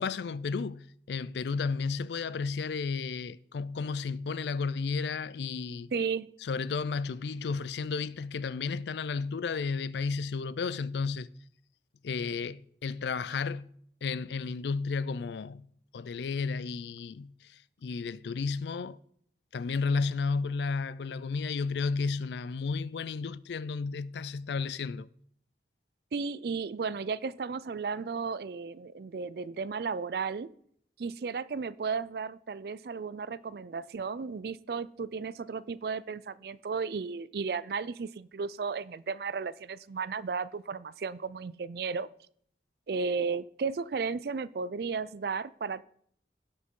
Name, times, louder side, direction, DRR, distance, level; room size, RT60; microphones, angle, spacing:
voice 1, 0.0-5.9 6.4-11.3 12.0-13.7 14.0-15.7 15.9-17.3 17.8-19.0 19.5-25.1, left 4 dB, 75° left, 0.4 m, -32 dB
voice 2, 5.9-6.3 26.1-30.5 31.0-42.1 42.9-45.8, right 5 dB, 60° right, 0.4 m, -34 dB
17.0 x 6.1 x 3.8 m
head